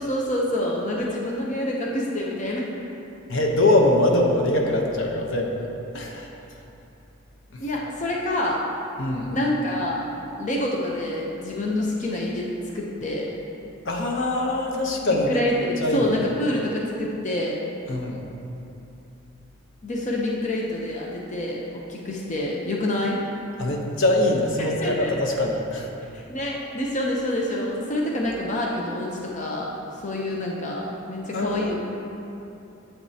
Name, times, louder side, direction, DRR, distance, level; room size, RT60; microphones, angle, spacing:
voice 1, 0.0-2.7 7.6-8.6 9.3-10.1 10.4-12.5 12.7-13.3 15.1-17.6 19.8-23.2 24.6-25.3 26.1-31.8, left 1 dB, 35° left, -2 dB, 0.7 m, -27 dB
voice 2, 3.3-5.7 5.9-6.3 7.5-7.6 9.0-9.3 13.8-15.4 15.8-16.1 17.9-18.2 23.6-25.9 28.2-28.3 31.3-31.8, left 1 dB, 65° left, 1 dB, 0.9 m, -23 dB
10.0 x 7.4 x 2.8 m, 2.8 s
head